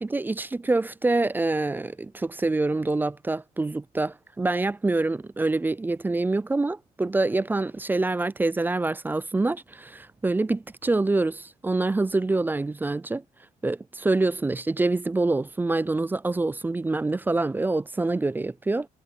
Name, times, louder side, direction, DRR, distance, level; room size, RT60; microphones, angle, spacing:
voice 1, 0.0-13.2 13.6-18.9, right 2 dB, 10° right, 0.3 m, -26 dB
cardioid pair, 110°, 17 cm